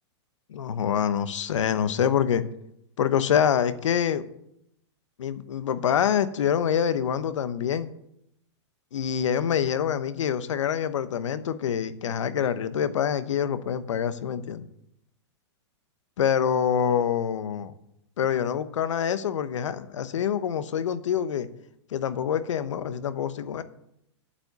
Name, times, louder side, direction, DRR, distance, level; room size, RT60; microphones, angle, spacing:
voice 1, 0.5-2.4 3.0-4.2 5.2-7.9 8.9-14.7 16.2-17.7 18.2-21.5 21.9-23.6, left 8 dB, 90° left, 13 dB, 1.0 m, -26 dB
8.8 x 7.3 x 8.0 m, 0.77 s
supercardioid pair, 175°, 15 cm